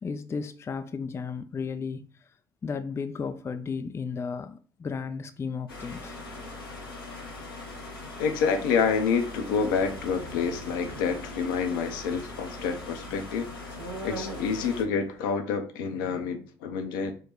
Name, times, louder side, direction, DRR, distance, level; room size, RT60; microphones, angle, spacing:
voice 1, 0.0-2.3 2.6-6.2, left 5 dB, 20° left, 0.4 m, -34 dB
sound 1, 5.7-14.8, left 2 dB, 85° left, 1.0 m, -41 dB
voice 2, 8.2-13.5 14.0-17.1, left 5 dB, 70° left, 0.7 m, -28 dB
sound 2, 9.6-15.3, right 1 dB, 85° right, 0.6 m, -43 dB
4.6 x 2.2 x 4.5 m
figure-of-eight pair, 55°, 12 cm